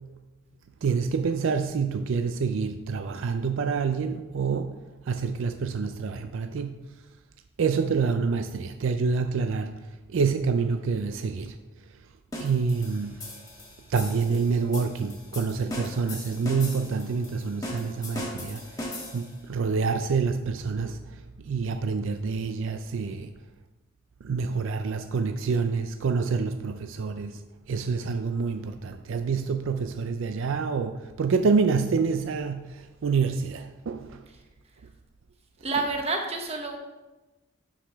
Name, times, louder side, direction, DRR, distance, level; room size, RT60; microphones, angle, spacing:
voice 1, 0.8-4.7 5.1-6.7 7.6-9.8 10.1-11.6 12.4-13.2 13.9-18.9 19.1-23.3 24.2-27.4 27.7-34.2, right 5 dB, 65° right, 8 dB, 0.4 m, -27 dB
sound 1, 12.3-19.4, left 1 dB, 15° left, 1.2 m, -39 dB
voice 2, 35.6-36.8, right 3 dB, 30° right, 3 dB, 1.0 m, -29 dB
11.5 x 4.9 x 3.4 m, 1.1 s
head